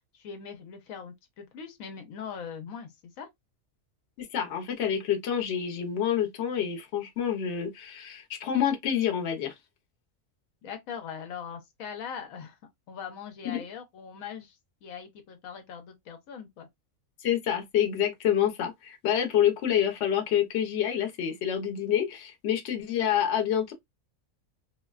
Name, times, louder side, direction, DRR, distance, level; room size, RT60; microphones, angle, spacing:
voice 1, 0.1-2.9 3.2-3.3 10.6-12.6 12.9-14.6 14.8-16.7, left 7 dB, 80° left, 1.1 m, -41 dB
voice 2, 4.2-9.5 13.4-13.6 17.2-23.7, left 9 dB, 60° left, 1.0 m, -27 dB
3.7 x 2.1 x 2.3 m
omnidirectional pair, 1.4 m